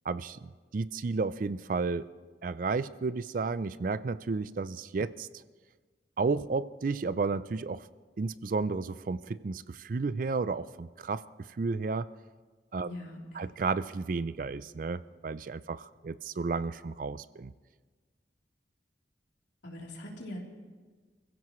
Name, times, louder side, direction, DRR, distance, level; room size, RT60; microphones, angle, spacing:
voice 1, 0.1-2.1 2.4-5.3 6.2-7.9 8.2-12.1 12.7-13.0 13.3-17.5, right 4 dB, 50° right, 16 dB, 0.4 m, -32 dB
voice 2, 12.8-13.4 19.6-20.4, left 1 dB, 85° left, -2 dB, 3.4 m, -42 dB
27.5 x 15.5 x 3.1 m, 1.4 s
head